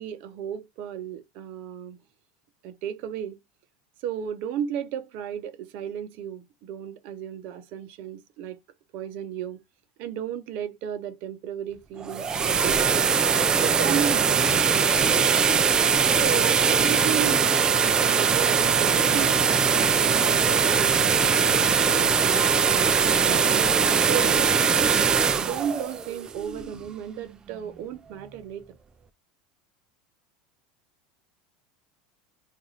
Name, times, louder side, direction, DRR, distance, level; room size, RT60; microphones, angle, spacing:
voice 1, 0.0-2.0 2.6-3.4 4.0-8.6 8.9-9.6 10.0-13.2 13.6-14.6 15.0-15.3 16.1-19.5 20.0-23.4 24.1-24.5 25.4-28.6, right 9 dB, 60° right, 0.7 m, -34 dB
sound 1, 12.0-26.9, right 6 dB, 20° right, 0.3 m, -21 dB
2.5 x 2.4 x 3.1 m
supercardioid pair, 120°, 3 cm